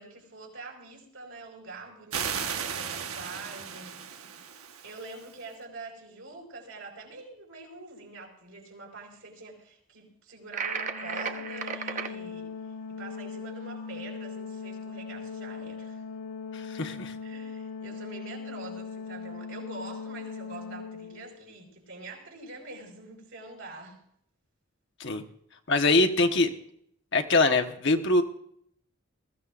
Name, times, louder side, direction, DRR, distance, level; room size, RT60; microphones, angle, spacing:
voice 1, 0.0-4.5 4.8-16.0 17.2-24.0, right 3 dB, 70° right, 0 dB, 5.0 m, -45 dB
sound 1, 2.1-5.4, right 7 dB, 90° right, 1.3 m, -36 dB
sound 2, 10.5-12.1, right 5 dB, 35° right, 0.9 m, -33 dB
Organ, 10.6-21.5, left 5 dB, 85° left, 1.3 m, -40 dB
voice 2, 16.5-17.1 25.0-25.2 25.7-26.5 27.1-28.2, left 2 dB, 55° left, 6 dB, 1.2 m, -23 dB
21.0 x 15.0 x 2.5 m, 0.68 s
head